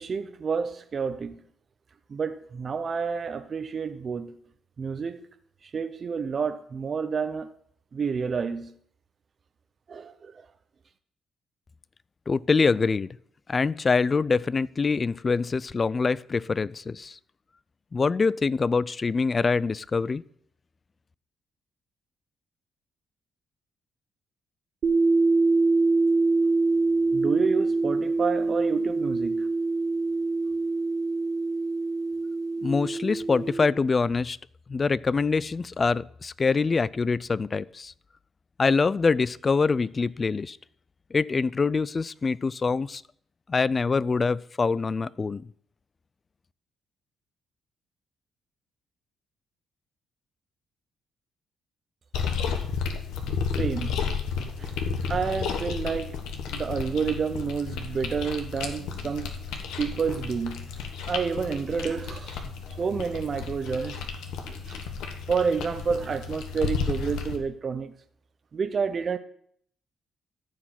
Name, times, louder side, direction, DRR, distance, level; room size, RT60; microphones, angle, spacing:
voice 1, 0.0-1.4 2.1-4.4 4.8-5.3 5.6-7.5 7.9-8.7 9.9-10.5 27.1-29.5 53.6-54.0 54.6-54.7 55.0-56.2 56.5-60.7 61.1-64.0 64.5-64.9 65.3-67.9 68.5-69.2, right 5 dB, 45° right, 0.6 m, -29 dB
voice 2, 12.3-13.2 13.5-17.2 17.9-20.2 32.6-34.4 34.7-37.9 38.6-40.6 41.1-43.0 43.5-45.5, left 4 dB, 35° left, 0.4 m, -25 dB
sound 1, 24.8-33.7, right 3 dB, 65° right, 1.9 m, -24 dB
sound 2, 52.1-67.4, left 6 dB, 90° left, 1.2 m, -32 dB
14.0 x 4.9 x 5.9 m
cardioid pair, 90°, 0 cm